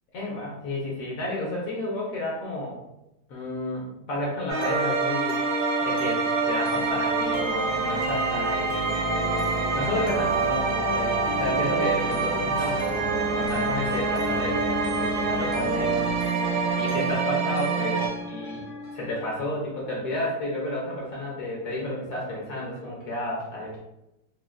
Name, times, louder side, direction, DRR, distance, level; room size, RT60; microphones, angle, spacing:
voice 1, 0.1-2.8 3.3-5.4 5.8-9.0 9.7-16.1 16.7-23.8, left 1 dB, 65° left, -3 dB, 1.0 m, -31 dB
Harmony of Peace - Angel Voices, 4.5-18.1, right 4 dB, 75° right, 1.3 m, -26 dB
sound 1, 5.3-7.7 8.2-19.4, equal, 80° left, 0.6 m, -46 dB
Ambient Horror Logo, 6.7-19.6, equal, 35° right, 0.5 m, -34 dB
3.0 x 2.3 x 2.4 m, 0.91 s
omnidirectional pair, 1.9 m